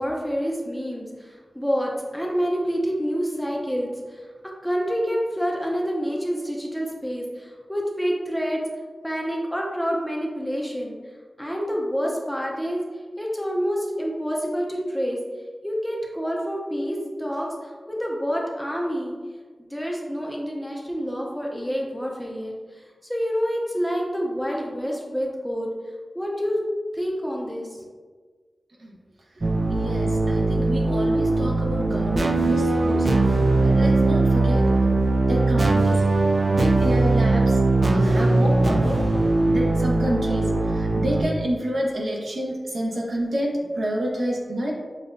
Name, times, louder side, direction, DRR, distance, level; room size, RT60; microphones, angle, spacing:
voice 1, 0.0-4.2 4.6-8.6 9.0-11.0 11.4-12.8 13.2-15.2 15.6-19.1 19.7-25.7 26.1-26.6 26.9-27.9, equal, ahead, -2 dB, 0.6 m, -27 dB
sound 1, 29.4-41.2, right 2 dB, 45° right, 0.3 m, -20 dB
voice 2, 29.7-34.9 35.3-36.0 36.5-37.6 37.9-39.1 39.4-44.7, equal, 70° right, -3 dB, 0.9 m, -29 dB
6.5 x 2.2 x 2.6 m, 1.5 s
wide cardioid pair, 95°, 0 cm